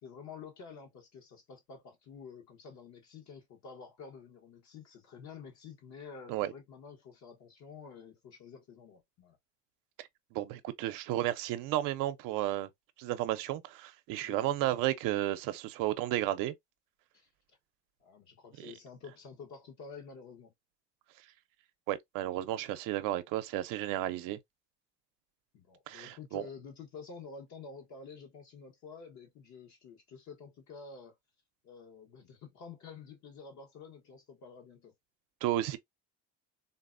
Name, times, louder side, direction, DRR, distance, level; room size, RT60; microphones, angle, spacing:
voice 1, 0.0-9.4 14.2-14.7 17.1-17.3 18.0-20.5 25.5-31.1 31.6-34.9, left 5 dB, 60° left, 1.0 m, -49 dB
voice 2, 10.0-12.7 13.0-16.5 18.6-18.7 21.9-24.4 25.9-26.4 35.4-35.8, right 14 dB, 80° right, 0.6 m, -33 dB
3.8 x 2.1 x 2.4 m
cardioid pair, 105°, 32 cm